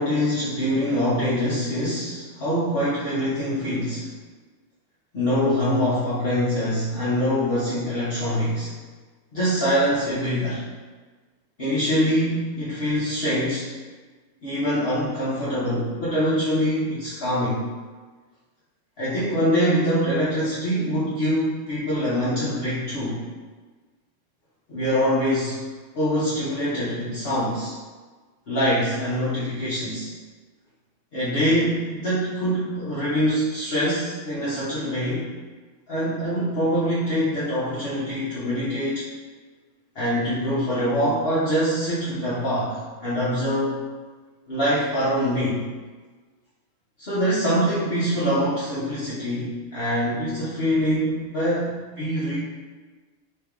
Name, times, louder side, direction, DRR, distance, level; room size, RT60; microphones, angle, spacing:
voice 1, 0.0-4.1 5.1-8.7 9.3-10.6 11.6-13.7 14.4-17.6 19.0-23.2 24.7-25.6 25.9-27.7 28.5-30.1 31.1-35.3 35.9-39.0 39.9-43.8 44.5-45.6 47.0-52.4, equal, 50° left, -10 dB, 1.0 m, -24 dB
3.3 x 3.2 x 3.5 m, 1.3 s
omnidirectional pair, 1.4 m